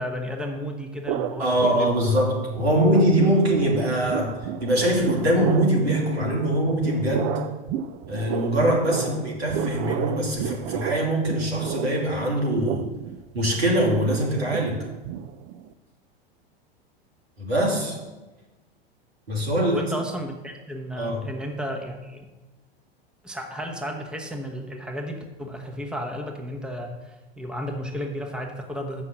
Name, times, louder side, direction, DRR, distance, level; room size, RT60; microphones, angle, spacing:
voice 1, 0.0-2.1 8.9-9.1 19.6-22.3 23.2-29.0, equal, 5° right, 3 dB, 1.0 m, -33 dB
sound 1, 1.1-2.3 2.6-15.7, right 9 dB, 35° right, 0.5 m, -32 dB
voice 2, 1.4-7.3 8.1-12.8 13.3-14.8 17.4-18.0 19.3-19.8 21.0-21.3, right 1 dB, 80° right, -1 dB, 2.8 m, -23 dB
7.7 x 6.0 x 7.7 m, 1.2 s
hypercardioid pair, 95°, 31 cm